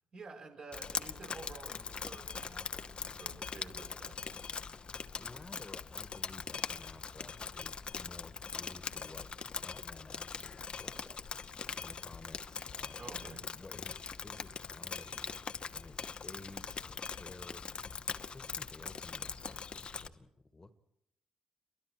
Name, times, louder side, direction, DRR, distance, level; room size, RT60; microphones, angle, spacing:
voice 1, 0.1-4.5 13.0-13.5, right 3 dB, 55° right, -1 dB, 7.7 m, -51 dB
Drip, 0.7-20.1, left 5 dB, 45° left, 1.0 m, -42 dB
voice 2, 5.2-9.3 9.6-20.8, left 2 dB, 25° left, 10 dB, 1.7 m, -54 dB
28.5 x 23.5 x 4.7 m, 0.79 s
hypercardioid pair, 45°, 2 cm